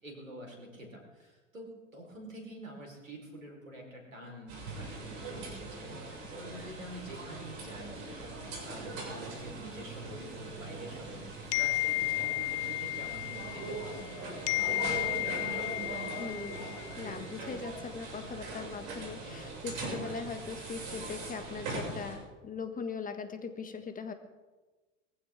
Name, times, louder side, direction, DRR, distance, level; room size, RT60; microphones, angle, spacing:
voice 1, 0.0-14.3 14.6-16.1, right 1 dB, 90° right, 1 dB, 4.7 m, -47 dB
sound 1, 4.5-22.1, right 3 dB, 55° right, 6.7 m, -41 dB
sound 2, 11.5-14.1 14.5-17.0, left 17 dB, 60° left, 0.5 m, -33 dB
voice 2, 16.2-16.6 17.0-24.1, left 5 dB, 20° left, 8 dB, 1.6 m, -40 dB
22.0 x 15.0 x 3.7 m, 1.2 s
figure-of-eight pair, 90°, 38 cm